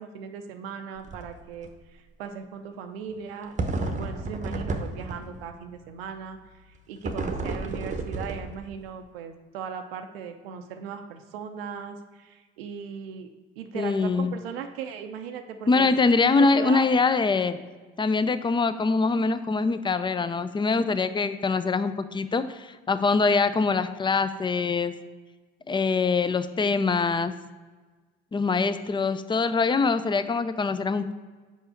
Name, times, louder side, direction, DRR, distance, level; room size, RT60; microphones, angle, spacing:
voice 1, 0.0-6.4 6.9-13.3 13.6-15.9 16.4-16.9, right 7 dB, 85° right, 6 dB, 0.5 m, -38 dB
sound 1, 1.0-1.3 1.6-1.7 3.6-5.5 7.0-8.8, right 3 dB, 25° right, 0.8 m, -31 dB
voice 2, 13.7-14.3 15.7-17.6 18.0-24.9 25.7-27.3 28.3-31.1, left 4 dB, 15° left, 12 dB, 0.4 m, -24 dB
5.4 x 5.2 x 4.4 m, 1.3 s
hypercardioid pair, 55°, 29 cm